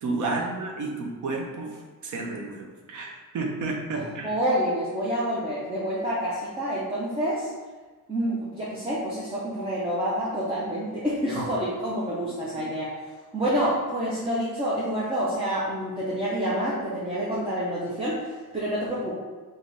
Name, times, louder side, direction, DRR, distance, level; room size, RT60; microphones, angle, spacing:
voice 1, 0.0-4.3 12.1-12.3 12.6-12.7, right 3 dB, 50° right, 1 dB, 0.7 m, -32 dB
voice 2, 3.9-7.5 8.1-12.9 13.3-19.1, equal, 15° right, -7 dB, 0.4 m, -28 dB
3.2 x 2.7 x 3.8 m, 1.3 s
cardioid pair, 175°, 38 cm